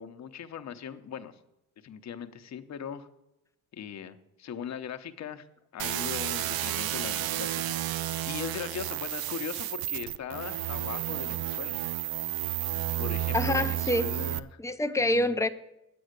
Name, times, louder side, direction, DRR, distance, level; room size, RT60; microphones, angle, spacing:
voice 1, 0.0-1.3 1.8-3.1 3.7-5.5 5.7-7.7 8.3-11.8 13.0-14.6 15.0-15.4, left 8 dB, 50° left, 8 dB, 0.9 m, -39 dB
sound 1, 5.8-14.4, right 13 dB, 85° right, 0.5 m, -32 dB
voice 2, 13.3-14.1 14.6-15.5, left 1 dB, 10° left, 9 dB, 0.5 m, -26 dB
9.1 x 8.6 x 6.6 m, 0.91 s
cardioid pair, 135°, 35 cm